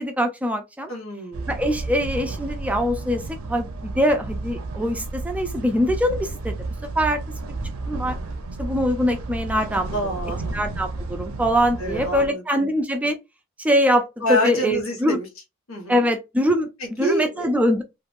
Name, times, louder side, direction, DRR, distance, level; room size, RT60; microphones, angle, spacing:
voice 1, 0.0-0.9 1.5-6.6 7.0-7.2 7.9-8.2 8.6-9.9 10.5-13.2 13.6-15.2 15.9-17.8, equal, 5° right, 0.3 m, -23 dB
voice 2, 0.9-1.5 9.9-10.5 11.8-12.7 14.2-15.3 15.7-16.1 16.8-17.5, equal, 75° left, 1.4 m, -27 dB
sound 1, 1.3-12.3, right 3 dB, 85° right, 0.6 m, -32 dB
2.9 x 2.5 x 2.4 m
head